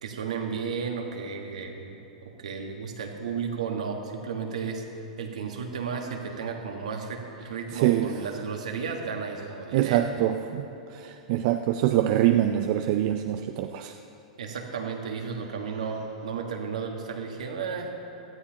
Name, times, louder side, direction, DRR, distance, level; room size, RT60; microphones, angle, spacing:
voice 1, 0.0-2.0 2.4-4.8 5.2-10.1 14.4-17.9, right 5 dB, 75° right, 2 dB, 1.6 m, -33 dB
voice 2, 7.7-8.1 9.7-10.6 10.9-13.9, right 12 dB, 50° right, 7 dB, 0.5 m, -24 dB
17.5 x 13.0 x 2.9 m, 3.0 s
hypercardioid pair, 105°, 4 cm